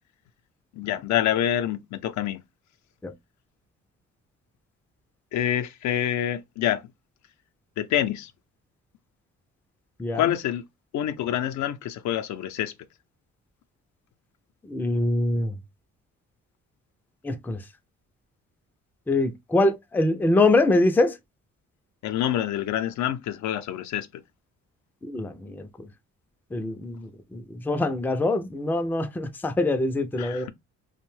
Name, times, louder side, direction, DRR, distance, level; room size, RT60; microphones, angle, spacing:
voice 1, 0.8-2.4 5.3-6.8 7.8-8.3 10.1-10.6 10.9-12.7 22.0-24.1 30.2-30.5, left 11 dB, 70° left, 0.5 m, -26 dB
voice 2, 14.7-15.5 17.2-17.6 19.1-21.2 25.0-25.9 26.5-30.5, left 2 dB, 5° left, 0.4 m, -24 dB
2.6 x 2.1 x 3.1 m
cardioid pair, 90°, 30 cm